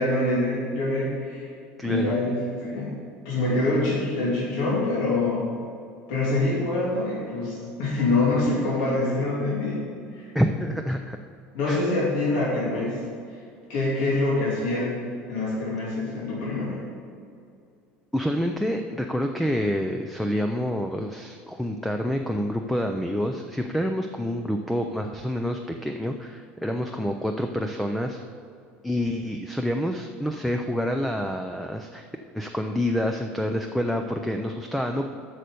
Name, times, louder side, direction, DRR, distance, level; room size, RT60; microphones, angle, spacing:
voice 1, 0.0-1.5 1.8-3.0 3.2-5.4 6.1-9.9 10.1-10.3 11.5-13.0 13.7-15.0 15.3-16.8, left 2 dB, 80° left, -7 dB, 2.8 m, -25 dB
voice 2, 1.8-2.2 10.3-11.2 11.7-11.9 18.1-28.2 28.8-32.1 32.3-35.1, equal, ahead, 4 dB, 0.3 m, -27 dB
8.5 x 6.3 x 6.8 m, 2.3 s
cardioid pair, 175°, 4 cm